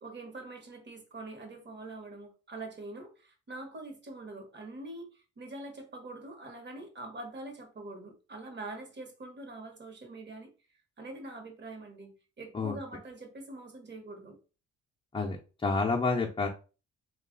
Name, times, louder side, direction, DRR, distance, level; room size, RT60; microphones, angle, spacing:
voice 1, 0.0-10.5 11.0-14.4, right 2 dB, 35° right, 5 dB, 1.1 m, -44 dB
voice 2, 15.6-16.5, left 3 dB, 15° left, -1 dB, 0.5 m, -28 dB
3.1 x 2.4 x 3.8 m, 0.34 s
cardioid pair, 90°, 30 cm